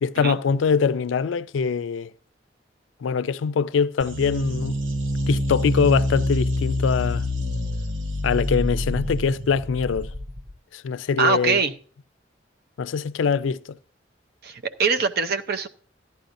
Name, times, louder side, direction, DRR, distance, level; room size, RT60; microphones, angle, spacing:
voice 1, 0.0-2.1 3.0-4.8 5.3-7.3 8.2-10.1 10.7-11.6 12.8-13.8, left 5 dB, 85° left, 0.4 m, -23 dB
sound 1, 4.0-10.5, left 1 dB, 80° right, 1.3 m, -26 dB
voice 2, 11.2-11.7 14.4-15.7, right 5 dB, 55° right, 0.7 m, -23 dB
14.0 x 10.5 x 2.6 m
head